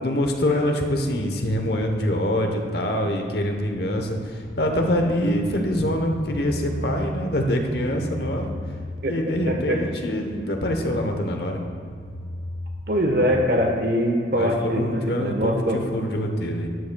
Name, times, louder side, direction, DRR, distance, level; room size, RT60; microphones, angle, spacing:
voice 1, 0.0-8.5 9.1-11.6 14.3-15.5 15.9-16.7, left 1 dB, 60° left, 4 dB, 0.9 m, -25 dB
sound 1, 3.6-13.4, left 1 dB, 45° left, 2.3 m, -36 dB
voice 2, 9.5-9.8 12.9-15.8, equal, 55° right, 2 dB, 1.2 m, -22 dB
12.5 x 9.6 x 2.3 m, 2.3 s
head